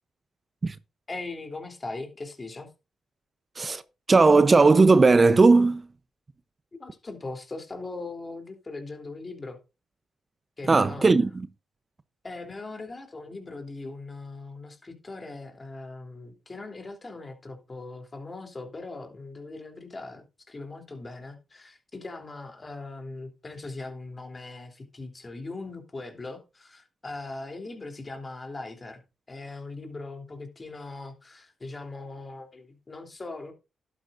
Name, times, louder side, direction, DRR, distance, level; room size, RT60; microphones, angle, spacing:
voice 1, 1.1-2.7 6.8-9.6 10.6-11.2 12.2-29.0 29.3-33.5, left 3 dB, 35° left, 3.3 m, -40 dB
voice 2, 4.1-5.9 10.7-11.5, right 3 dB, 35° right, 0.7 m, -17 dB
11.5 x 9.6 x 2.6 m
supercardioid pair, 55°, 0 cm